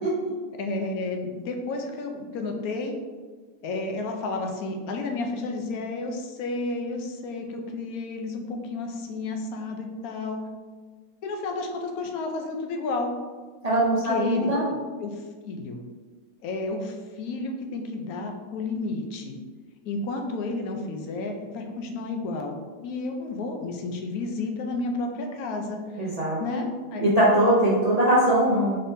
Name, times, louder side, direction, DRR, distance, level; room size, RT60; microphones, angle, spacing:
voice 1, 0.6-3.0 3.6-10.4 11.2-13.1 14.0-14.5 15.0-15.8 16.4-19.4 19.8-26.1 26.4-27.1, left 3 dB, 75° left, 3 dB, 1.0 m, -31 dB
voice 2, 13.6-14.7 26.0-26.6 27.0-28.8, right 1 dB, 85° right, -8 dB, 0.3 m, -21 dB
4.0 x 3.4 x 2.7 m, 1.4 s
omnidirectional pair, 1.7 m